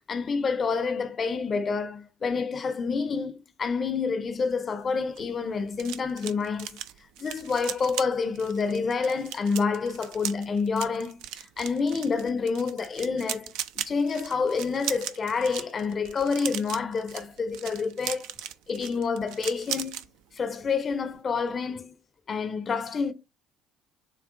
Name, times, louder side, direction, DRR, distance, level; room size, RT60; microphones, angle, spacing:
voice 1, 0.1-6.8 7.2-13.5 13.9-18.3 18.7-20.0 20.3-22.0 22.3-23.1, left 5 dB, 35° left, 0.5 m, -28 dB
sound 1, 4.9-20.1 20.4-20.7 20.9-21.2, right 11 dB, 65° right, 0.3 m, -38 dB
7.0 x 2.4 x 2.6 m
figure-of-eight pair, 55°, 0 cm